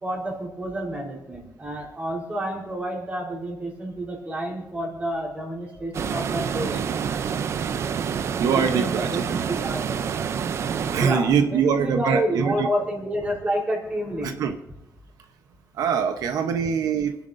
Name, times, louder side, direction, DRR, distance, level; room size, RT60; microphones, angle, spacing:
voice 1, 0.0-6.9 8.5-9.9 11.0-14.4, equal, 25° right, -1 dB, 3.9 m, -29 dB
sound 1, 5.9-11.1, right 7 dB, 50° right, 0.5 m, -27 dB
voice 2, 8.4-9.5 10.3-10.6 10.9-12.7 14.2-14.6 15.8-17.1, right 6 dB, 90° right, 7 dB, 0.9 m, -23 dB
28.5 x 10.5 x 2.6 m, 0.94 s
cardioid pair, 155°, 6 cm